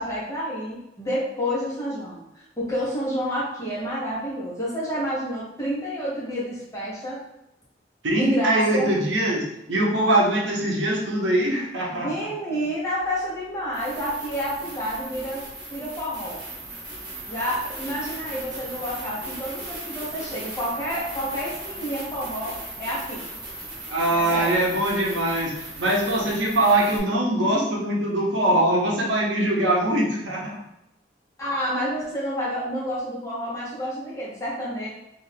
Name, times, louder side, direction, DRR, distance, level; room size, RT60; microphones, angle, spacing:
voice 1, 0.0-7.2 8.1-8.9 12.0-15.4 15.7-16.4 17.3-23.2 24.1-24.5 31.4-34.9, equal, 15° left, -7 dB, 0.9 m, -29 dB
voice 2, 8.0-12.1 23.9-30.6, right 1 dB, 85° right, -2 dB, 0.7 m, -22 dB
sound 1, 13.7-27.0, right 2 dB, 60° right, 1.1 m, -37 dB
2.5 x 2.3 x 3.3 m, 0.86 s
head